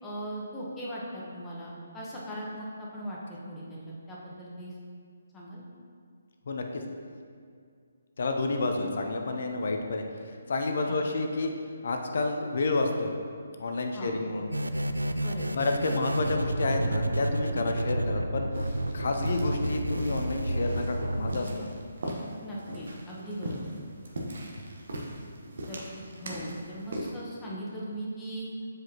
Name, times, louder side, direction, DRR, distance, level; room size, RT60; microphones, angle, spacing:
voice 1, 0.0-3.8 4.1-4.7 5.3-5.6 10.9-11.0 13.9-14.1 15.2-15.6 22.4-23.8 25.7-28.5, equal, 15° left, -6 dB, 1.1 m, -39 dB
voice 2, 6.5-6.8 8.2-11.5 11.8-13.1 13.6-14.5 15.5-21.8, left 2 dB, 55° left, 4 dB, 0.6 m, -30 dB
sound 1, 14.5-21.3, right 1 dB, 90° right, 0.3 m, -30 dB
sound 2, 18.5-27.1, right 1 dB, 60° right, 0.9 m, -40 dB
7.4 x 4.9 x 2.8 m, 2.3 s
figure-of-eight pair, 140°, 0 cm